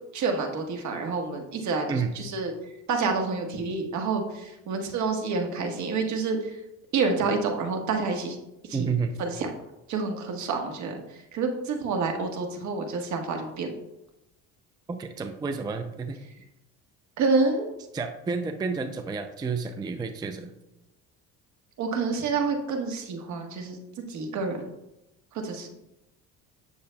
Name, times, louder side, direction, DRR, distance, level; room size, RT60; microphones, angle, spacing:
voice 1, 0.1-2.5 2.9-6.6 6.9-8.4 8.7-8.9 9.2-9.5 9.9-13.7 17.2-17.7 21.8-23.8 24.1-24.6 25.3-25.7, right 4 dB, 60° right, 3 dB, 1.3 m, -28 dB
voice 2, 8.7-9.1 14.9-16.2 17.9-20.5, right 5 dB, 15° right, 7 dB, 0.4 m, -30 dB
8.4 x 6.5 x 2.2 m, 0.91 s
cardioid pair, 105°, 32 cm